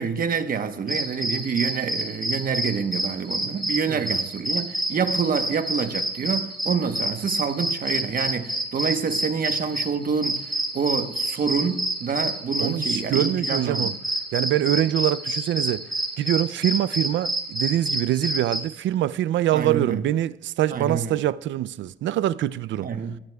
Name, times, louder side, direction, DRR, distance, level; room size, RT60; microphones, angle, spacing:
voice 1, 0.0-13.9 19.5-20.0 20.7-21.2 22.8-23.2, right 6 dB, 45° right, 1.1 m, -27 dB
sound 1, 0.9-18.6, right 1 dB, ahead, 3.0 m, -28 dB
voice 2, 12.6-13.9 14.3-15.9 16.2-22.9, right 12 dB, 70° right, 0.5 m, -24 dB
20.0 x 13.0 x 2.3 m
cardioid pair, 90°, 20 cm